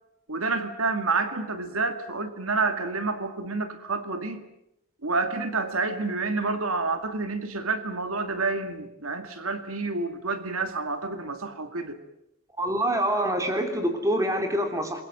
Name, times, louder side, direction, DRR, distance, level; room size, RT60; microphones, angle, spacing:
voice 1, 0.3-4.4 5.0-12.0, right 3 dB, 85° right, 8 dB, 2.3 m, -29 dB
voice 2, 12.6-15.0, right 1 dB, 15° right, 5 dB, 3.2 m, -25 dB
27.5 x 22.0 x 7.8 m, 0.83 s
head